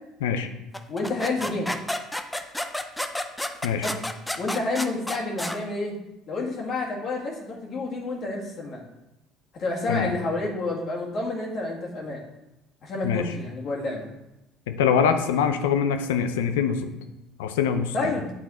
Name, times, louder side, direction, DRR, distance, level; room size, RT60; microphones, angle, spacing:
sound 1, 0.7-5.6, left 1 dB, 10° left, 0.6 m, -31 dB
voice 1, 0.9-1.7 3.8-4.0 4.4-5.9 6.3-8.9 9.6-12.2 12.8-14.1 15.2-15.3 17.9-18.3, left 2 dB, 55° left, -2 dB, 1.9 m, -29 dB
voice 2, 14.7-16.9 17.4-17.9, left 7 dB, 85° left, 8 dB, 0.6 m, -23 dB
8.4 x 4.0 x 4.3 m, 0.91 s
hypercardioid pair, 75°, 0 cm